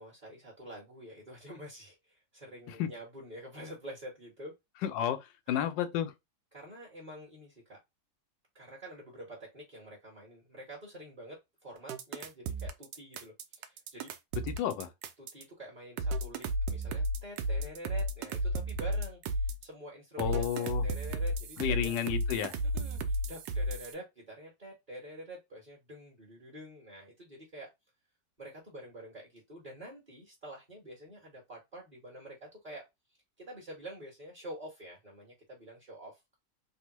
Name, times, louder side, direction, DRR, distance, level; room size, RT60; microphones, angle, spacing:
voice 1, 0.0-4.5 5.5-5.7 6.5-7.8 8.5-14.1 15.2-21.9 22.7-27.7 28.4-32.9 33.4-36.4, right 1 dB, 25° right, 1.2 m, -47 dB
voice 2, 4.8-6.1 14.4-14.9 20.2-20.9 21.6-22.5, left 9 dB, 85° left, 1.3 m, -32 dB
sound 1, 11.9-15.4 16.0-19.6 20.2-23.9, right 1 dB, 80° right, 1.2 m, -33 dB
3.5 x 2.2 x 2.9 m
omnidirectional pair, 1.9 m